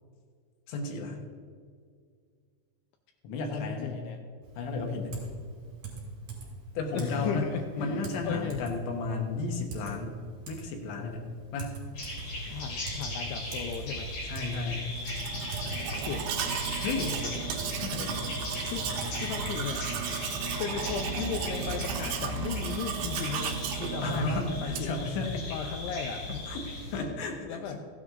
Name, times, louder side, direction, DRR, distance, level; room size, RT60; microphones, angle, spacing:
voice 1, 0.7-1.2 3.2-4.0 4.6-5.2 6.7-7.5 7.8-10.2 10.5-11.2 11.5-11.8 14.2-14.9 16.8-17.2 17.8-18.2 24.0-25.5 26.5-27.8, left 3 dB, 70° left, 2 dB, 3.4 m, -33 dB
voice 2, 3.5-4.2 6.9-8.6 12.5-14.1 16.0-16.2 16.7-16.8 18.7-19.9 20.6-24.9 25.5-26.4 27.4-27.8, left 7 dB, 85° left, 4 dB, 2.6 m, -36 dB
Typing, 4.4-19.5, right 3 dB, 40° right, 3.8 m, -45 dB
sound 1, 11.9-27.0, left 1 dB, 55° left, 5.3 m, -37 dB
Domestic sounds home sounds, 15.0-25.1, right 7 dB, 75° right, 2.6 m, -35 dB
15.0 x 9.5 x 3.7 m, 2.1 s
omnidirectional pair, 5.8 m